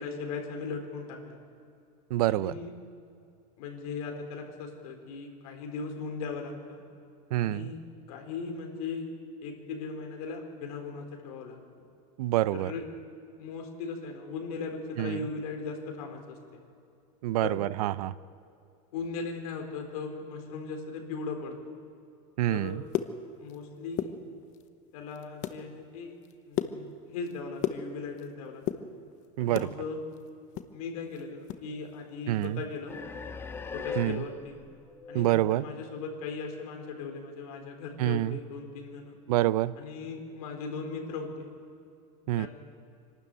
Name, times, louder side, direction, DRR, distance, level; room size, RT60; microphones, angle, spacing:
voice 1, 0.0-1.4 2.3-2.7 3.6-6.8 7.4-7.8 8.1-9.1 9.4-11.6 12.5-12.9 13.4-16.6 17.4-17.6 18.9-21.6 22.5-22.8 23.4-24.2 24.9-26.2 26.5-28.6 29.4-30.0 30.7-33.0 33.7-34.6 35.1-39.2 39.8-41.5 42.2-42.5, left 4 dB, 75° left, 3 dB, 4.3 m, -38 dB
voice 2, 2.1-2.5 7.3-7.7 12.2-12.7 15.0-15.2 17.2-18.1 22.4-22.8 29.4-29.7 32.3-32.6 34.0-34.2 35.1-35.7 38.0-38.4 39.3-39.7 42.3-42.5, right 15 dB, 85° right, 18 dB, 0.6 m, -27 dB
sound 1, 22.7-23.6 23.9-24.7 25.1-25.6 26.0-28.3 28.6-29.7 30.1-31.7 31.9-32.0 32.4-32.6 33.0-33.2, left 11 dB, 40° left, 1.1 m, -34 dB
sound 2, 32.9-36.0, left 5 dB, 10° left, 0.7 m, -40 dB
26.0 x 12.5 x 9.2 m, 2.5 s
supercardioid pair, 155°, 19 cm